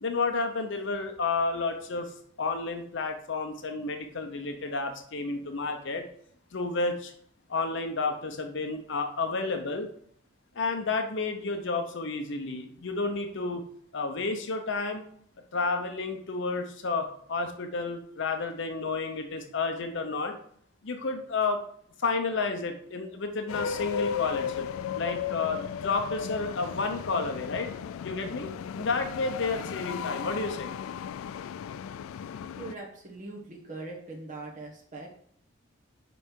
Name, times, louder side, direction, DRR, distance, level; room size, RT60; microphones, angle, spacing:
voice 1, 0.0-2.1 2.4-6.0 6.5-7.1 7.5-9.9 10.5-13.6 13.9-15.0 15.5-20.3 20.8-21.6 22.0-24.7 24.9-27.7 28.0-30.7, left 3 dB, 65° left, 5 dB, 0.8 m, -31 dB
sound 1, 23.5-32.7, left 8 dB, 90° left, 0.3 m, -35 dB
voice 2, 32.6-35.1, right 3 dB, 40° right, -2 dB, 1.3 m, -41 dB
5.5 x 5.4 x 4.6 m, 0.63 s
head